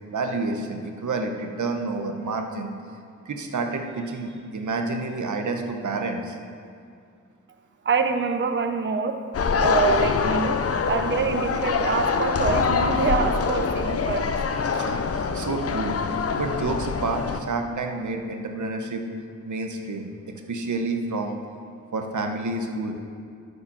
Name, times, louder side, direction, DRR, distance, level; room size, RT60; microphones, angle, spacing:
voice 1, 0.1-2.7 3.3-6.4 14.7-16.0 16.4-19.1 19.5-20.1 20.5-21.4 21.9-23.0, right 3 dB, 70° right, 4 dB, 1.0 m, -29 dB
voice 2, 7.8-9.2 9.6-14.4, right 5 dB, 40° right, 7 dB, 0.6 m, -25 dB
sound 1, 9.3-17.4, left 5 dB, 50° left, 0.6 m, -24 dB
13.0 x 5.1 x 5.6 m, 2.3 s
wide cardioid pair, 85°, 31 cm